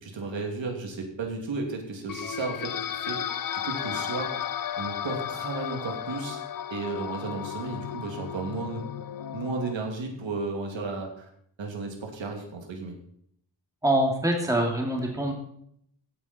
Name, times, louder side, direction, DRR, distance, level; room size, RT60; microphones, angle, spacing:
voice 1, 0.0-3.2 3.6-4.3 4.8-6.4 6.7-8.8 9.3-11.3 11.6-13.0, right 3 dB, 75° right, 2 dB, 2.7 m, -33 dB
sound 1, 2.1-9.7, left 9 dB, 50° left, 0.5 m, -34 dB
voice 2, 13.8-15.3, right 1 dB, 5° right, 0 dB, 2.5 m, -24 dB
16.0 x 8.4 x 4.4 m, 0.69 s
wide cardioid pair, 140°, 45 cm